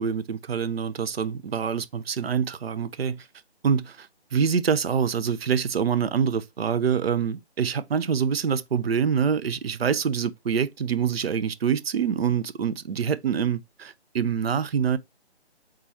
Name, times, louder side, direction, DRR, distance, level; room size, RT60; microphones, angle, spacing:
voice 1, 0.0-3.3 3.6-15.0, right 7 dB, 65° right, 0.5 m, -25 dB
3.7 x 2.7 x 4.3 m
hypercardioid pair, 175°, 33 cm